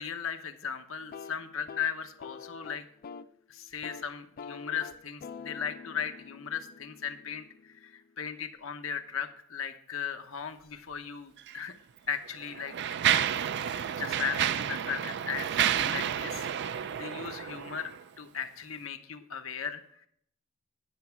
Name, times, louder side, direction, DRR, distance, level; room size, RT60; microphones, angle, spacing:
voice 1, 0.0-2.8 3.5-11.7 12.1-17.9 18.2-20.1, left 7 dB, 75° left, 7 dB, 0.9 m, -37 dB
sound 1, 1.0-3.4 3.7-4.0 4.4-8.2, left 5 dB, 45° left, 0.3 m, -47 dB
Mechanisms, 11.4-11.5 12.3-18.0, right 9 dB, 60° right, 0.4 m, -30 dB
10.0 x 5.9 x 5.8 m, 0.69 s
head